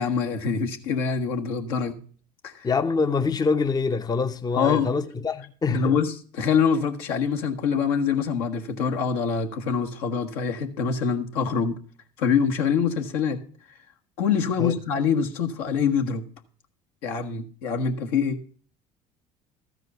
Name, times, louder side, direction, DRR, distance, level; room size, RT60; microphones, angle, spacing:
voice 1, 0.0-2.0 2.4-2.7 4.6-4.9 5.7-11.8 12.2-13.4 14.2-16.2 17.0-18.4, left 6 dB, 75° left, 1.5 m, -25 dB
voice 2, 2.6-6.0 14.6-14.7, left 4 dB, 20° left, 0.7 m, -25 dB
13.5 x 4.9 x 7.9 m
hypercardioid pair, 70°, 19 cm